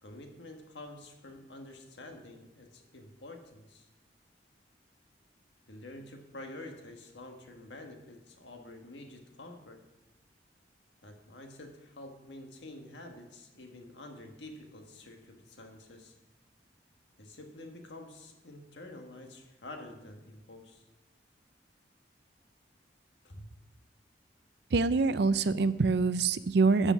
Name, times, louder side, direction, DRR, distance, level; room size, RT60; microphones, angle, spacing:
voice 1, 0.0-3.9 5.7-9.9 11.0-16.2 17.2-20.8 23.2-23.5, left 1 dB, 80° left, 4 dB, 1.6 m, -48 dB
voice 2, 24.7-26.9, right 4 dB, 70° right, 14 dB, 0.5 m, -25 dB
12.0 x 5.0 x 7.3 m, 0.97 s
head